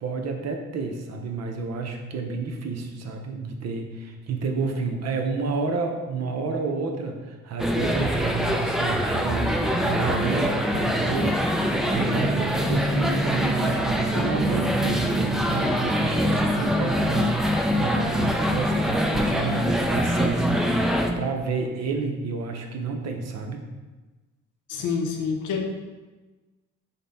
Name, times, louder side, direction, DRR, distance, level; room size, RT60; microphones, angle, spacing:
voice 1, 0.0-17.4 17.7-23.6, right 4 dB, 60° right, 3 dB, 0.7 m, -30 dB
sound 1, 7.6-21.1, equal, ahead, 0.3 m, -24 dB
voice 2, 24.7-25.7, left 5 dB, 90° left, 3 dB, 0.7 m, -27 dB
5.2 x 2.2 x 4.0 m, 1.2 s
cardioid pair, 90°, 30 cm